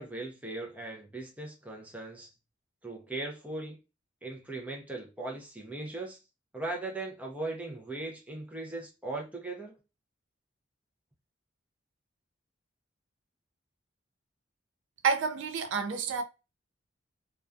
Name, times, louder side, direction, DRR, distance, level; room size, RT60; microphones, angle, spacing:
voice 1, 0.0-2.3 2.8-3.8 4.2-6.2 6.5-9.8, right 2 dB, 5° right, 0.5 m, -38 dB
voice 2, 15.0-16.2, right 5 dB, 70° right, 0.4 m, -29 dB
2.3 x 2.2 x 2.5 m
head